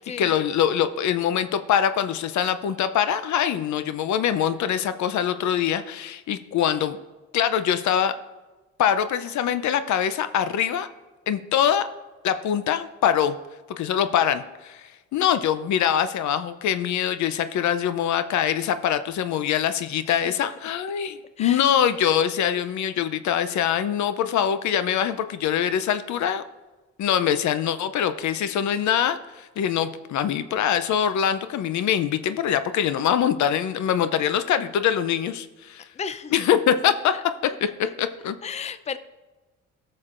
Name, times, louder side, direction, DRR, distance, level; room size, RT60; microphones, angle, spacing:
voice 1, 0.0-7.0 7.3-8.1 8.8-10.9 11.3-11.9 12.2-13.4 13.8-26.4 27.0-35.9 36.3-37.1 37.4-37.5 38.0-38.4, left 9 dB, 70° left, 12 dB, 0.6 m, -23 dB
voice 2, 36.0-36.3 37.8-37.9 38.4-39.0, left 6 dB, 25° left, 12 dB, 0.5 m, -33 dB
17.5 x 6.5 x 2.5 m, 1.2 s
cardioid pair, 90°, 30 cm